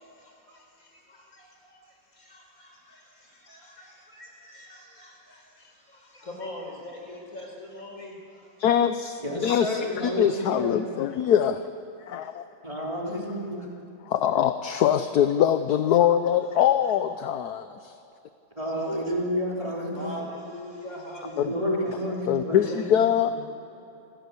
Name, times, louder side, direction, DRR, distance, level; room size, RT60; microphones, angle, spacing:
voice 1, 0.0-8.5 18.8-19.2 19.9-21.9 22.4-22.8, left 1 dB, 45° left, 0 dB, 4.8 m, -43 dB
voice 2, 8.6-11.7 12.0-12.4 14.1-17.9 21.4-21.5 22.3-23.3, left 9 dB, 65° left, 10 dB, 1.2 m, -23 dB
voice 3, 9.2-10.8 12.6-13.7 18.6-20.1 21.2-23.3, equal, 15° right, -3 dB, 3.4 m, -30 dB
28.5 x 15.5 x 8.2 m, 2.8 s
omnidirectional pair, 2.0 m